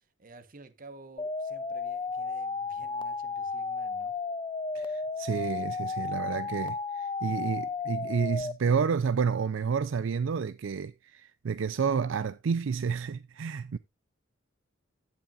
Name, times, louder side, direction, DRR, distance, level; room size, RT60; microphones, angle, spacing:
voice 1, 0.0-4.2, right 3 dB, 45° right, 1.1 m, -52 dB
sound 1, 1.2-8.5, left 4 dB, 25° left, 0.4 m, -33 dB
voice 2, 4.7-13.8, right 6 dB, 70° right, 0.4 m, -30 dB
16.0 x 5.8 x 2.4 m
head